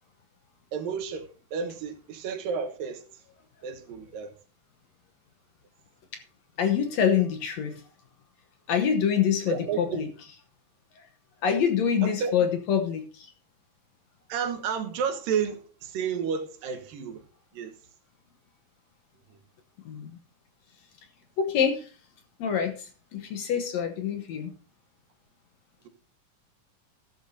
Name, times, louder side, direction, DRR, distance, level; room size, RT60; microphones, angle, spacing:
voice 1, 0.7-3.0 3.6-4.3 9.5-10.1 12.0-12.5 14.3-17.2 17.5-17.7, right 6 dB, 80° right, 3.0 m, -31 dB
voice 2, 6.6-7.8 8.7-10.1 11.4-13.3 19.9-20.1 21.4-21.9 22.4-22.8 23.1-24.5, left 7 dB, 65° left, 2.0 m, -25 dB
14.0 x 12.0 x 2.7 m
omnidirectional pair, 3.9 m